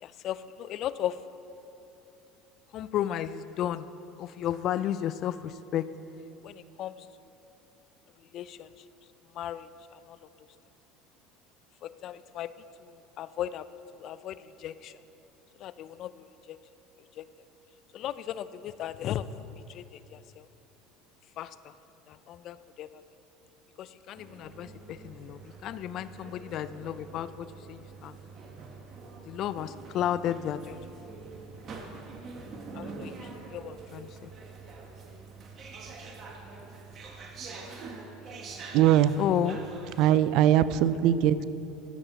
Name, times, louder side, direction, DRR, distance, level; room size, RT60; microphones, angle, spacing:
voice 1, 0.0-1.2 2.7-3.9 4.2-5.9 6.4-6.9 8.3-8.7 9.3-10.2 11.8-12.5 12.8-13.7 13.9-15.0 15.6-16.6 17.2-17.3 17.9-20.5 21.4-21.7 22.1-23.0 23.8-28.2 29.3-30.8 32.7-34.3 39.2-39.6, left 11 dB, 55° left, 15 dB, 0.4 m, -34 dB
sound 1, 24.1-40.1, right 4 dB, 45° right, 1.4 m, -45 dB
voice 2, 38.7-39.1 40.0-41.4, right 11 dB, 65° right, 15 dB, 0.4 m, -21 dB
14.5 x 7.2 x 4.0 m, 3.0 s
hypercardioid pair, 85°, 0 cm